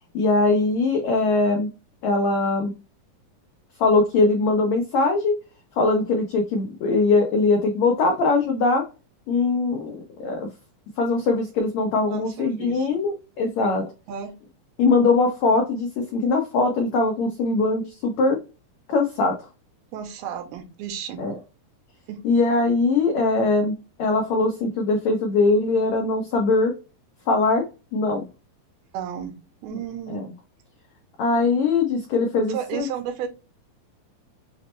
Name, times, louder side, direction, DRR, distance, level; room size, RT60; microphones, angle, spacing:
voice 1, 0.1-1.7 2.0-2.7 3.8-5.4 5.8-8.8 9.3-10.5 11.0-13.9 14.8-18.4 18.9-19.3 21.2-21.4 22.2-23.7 24.0-26.7 27.3-27.6 27.9-28.3 30.1-30.2 31.2-32.9, left 3 dB, 90° left, 2 dB, 1.5 m, -21 dB
voice 2, 12.1-13.0 14.1-14.4 19.9-21.2 22.1-22.2 28.9-29.3 29.6-30.3 32.5-33.3, right 8 dB, 80° right, 6 dB, 2.7 m, -33 dB
6.3 x 2.1 x 2.9 m, 0.30 s
omnidirectional pair, 4.4 m